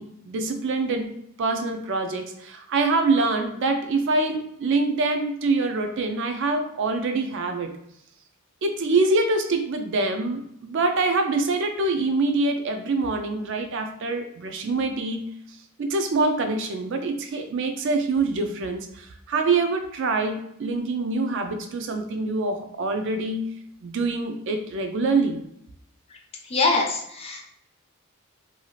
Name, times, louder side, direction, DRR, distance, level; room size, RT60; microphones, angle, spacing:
voice 1, 0.0-7.7 8.6-15.3 15.8-23.5 23.8-25.4, right 3 dB, 55° right, 5 dB, 0.4 m, -25 dB
voice 2, 26.4-27.4, left 3 dB, 25° left, 1 dB, 0.4 m, -24 dB
2.7 x 2.4 x 3.0 m, 0.75 s
head